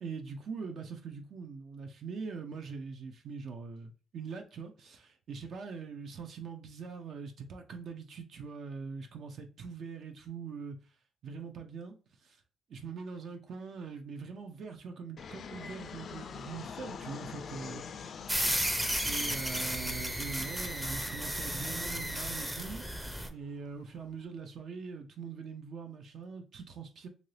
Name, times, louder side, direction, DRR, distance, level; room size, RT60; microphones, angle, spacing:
voice 1, 0.0-10.9 11.2-12.4 12.7-17.8 19.0-22.8 23.3-27.1, right 5 dB, 60° right, 0.5 m, -42 dB
Fixed-wing aircraft airplane, 15.2-24.2, left 6 dB, 55° left, 0.3 m, -46 dB
sound 1, 18.3-23.3, equal, 5° right, 0.5 m, -33 dB
2.8 x 2.6 x 3.1 m
cardioid pair, 90°, 0 cm